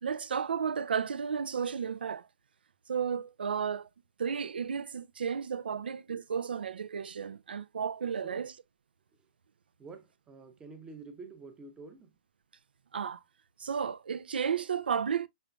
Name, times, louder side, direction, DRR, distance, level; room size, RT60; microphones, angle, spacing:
voice 1, 0.0-2.3 2.9-3.9 4.2-8.5 12.9-13.2 13.6-15.3, right 7 dB, 70° right, 0.5 m, -33 dB
voice 2, 9.8-12.1, right 4 dB, 15° right, 0.8 m, -48 dB
5.4 x 3.8 x 2.2 m
hypercardioid pair, 130°, 5 cm